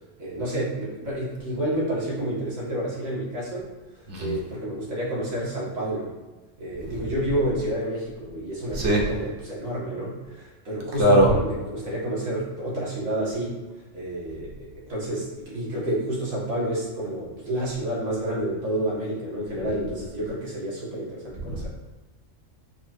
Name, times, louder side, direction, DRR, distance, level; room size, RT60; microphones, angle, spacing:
voice 1, 0.2-3.7 4.2-6.1 6.6-13.5 13.9-21.7, right 1 dB, 85° right, -7 dB, 2.0 m, -29 dB
voice 2, 8.7-9.1 11.0-11.3 21.4-21.7, right 1 dB, 65° right, -2 dB, 1.2 m, -20 dB
4.7 x 2.5 x 4.3 m, 1.2 s
omnidirectional pair, 1.3 m